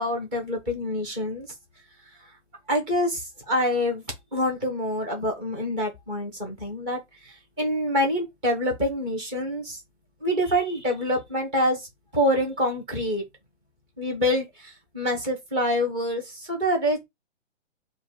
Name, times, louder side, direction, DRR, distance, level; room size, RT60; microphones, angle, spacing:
voice 1, 0.0-1.5 2.7-4.0 4.3-9.8 10.2-11.9 12.1-13.2 14.0-17.0, equal, 10° right, 0.4 m, -26 dB
4.8 x 2.1 x 3.7 m
hypercardioid pair, 155°, 35 cm